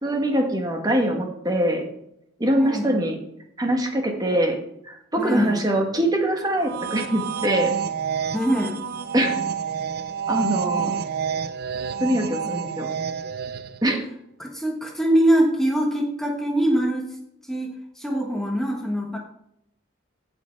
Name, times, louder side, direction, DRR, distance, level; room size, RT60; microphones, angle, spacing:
voice 1, 0.0-1.9 2.4-3.2 3.6-4.6 4.8-7.7 9.1-9.4 10.3-10.9 12.0-12.9 13.8-14.0, right 1 dB, 20° right, 3 dB, 1.4 m, -23 dB
voice 2, 2.6-2.9 5.2-5.6 8.3-8.8 13.8-14.0 14.4-17.1 17.5-19.2, right 1 dB, ahead, 0 dB, 1.3 m, -23 dB
sound 1, 6.5-13.9, right 7 dB, 50° right, 0.6 m, -28 dB
16.0 x 5.4 x 4.6 m, 0.78 s
head